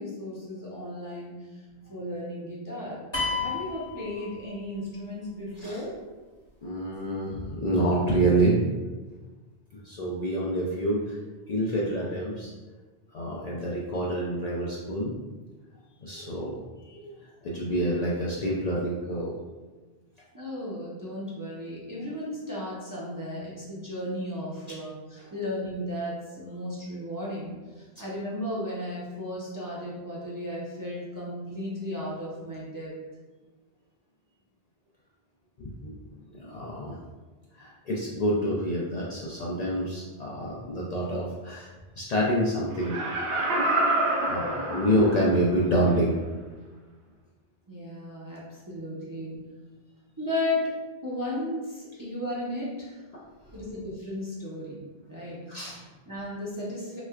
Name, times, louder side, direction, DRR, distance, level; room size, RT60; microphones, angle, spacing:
voice 1, 0.0-1.6 1.9-3.0 3.3-5.9 20.3-32.9 47.7-49.4 50.2-50.7 51.0-53.0 53.5-57.0, left 1 dB, 25° right, -7 dB, 0.5 m, -35 dB
sound 1, 3.1-4.8, left 4 dB, 30° left, 0.8 m, -31 dB
voice 2, 6.6-8.6 9.7-11.2 11.5-12.5 13.1-15.1 16.0-16.5 16.8-17.1 17.4-19.4 35.6-35.9 36.4-37.0 37.5-43.0 44.3-46.2 55.5-55.8, right 1 dB, 55° left, -5 dB, 0.5 m, -27 dB
Laughter, 42.7-45.4 45.9-46.0, right 2 dB, 70° right, 0.8 m, -27 dB
3.2 x 3.1 x 2.3 m, 1.3 s
omnidirectional pair, 1.0 m